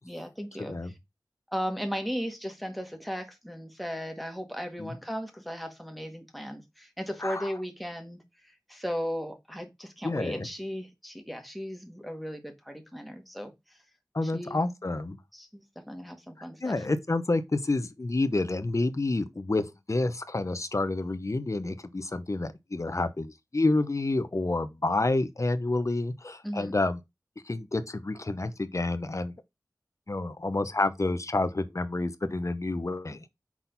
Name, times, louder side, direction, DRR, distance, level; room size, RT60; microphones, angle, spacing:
voice 1, 0.0-0.7 1.5-8.2 8.7-13.5 14.3-14.6 15.3-16.7 26.4-26.7, equal, ahead, 1.7 m, -36 dB
voice 2, 0.6-0.9 4.8-4.9 7.2-7.5 10.0-10.5 14.1-15.2 16.6-27.0 27.4-29.3 30.1-33.2, left 2 dB, 50° left, 0.8 m, -29 dB
6.0 x 4.0 x 4.0 m
wide cardioid pair, 50°, 7 cm